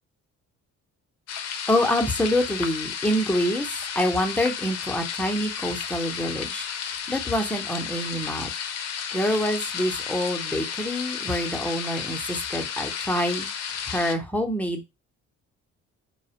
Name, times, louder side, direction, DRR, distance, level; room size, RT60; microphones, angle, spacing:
sound 1, 1.3-14.2, left 7 dB, 60° left, 0.4 m, -33 dB
voice 1, 1.7-3.7 4.0-8.5 9.1-13.5 13.9-14.8, left 1 dB, 5° left, 2 dB, 0.5 m, -26 dB
2.3 x 2.1 x 2.8 m, 0.23 s
cardioid pair, 90°, 30 cm